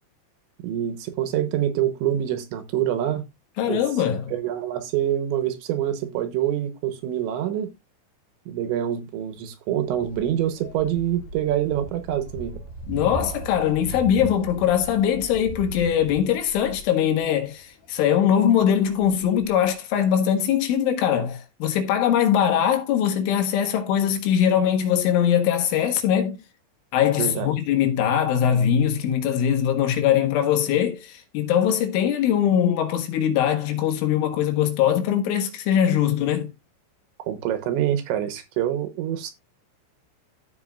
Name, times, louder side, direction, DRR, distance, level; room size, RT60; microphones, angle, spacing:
voice 1, 0.6-3.3 3.7-3.8 4.3-7.7 8.5-12.6 27.2-27.5 37.3-39.3, right 11 dB, 75° right, 3.0 m, -26 dB
voice 2, 3.6-4.3 12.9-26.4 26.9-36.5, left 9 dB, 75° left, 3.9 m, -21 dB
sound 1, 9.9-19.7, right 1 dB, 40° left, 2.4 m, -39 dB
14.5 x 5.7 x 2.3 m
omnidirectional pair, 5.7 m